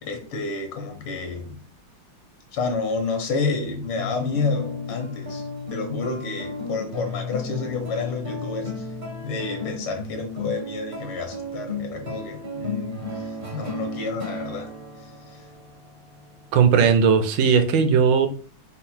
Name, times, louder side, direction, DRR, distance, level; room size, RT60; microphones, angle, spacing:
voice 1, 0.0-1.6 2.5-8.9 9.2-14.7 15.0-15.5, left 4 dB, 85° left, 4 dB, 1.8 m, -30 dB
sound 1, 4.0-16.7, left 3 dB, 50° right, 0.6 m, -34 dB
voice 2, 16.5-18.3, right 6 dB, 70° right, 8 dB, 1.2 m, -17 dB
5.3 x 2.1 x 4.2 m, 0.40 s
omnidirectional pair, 2.3 m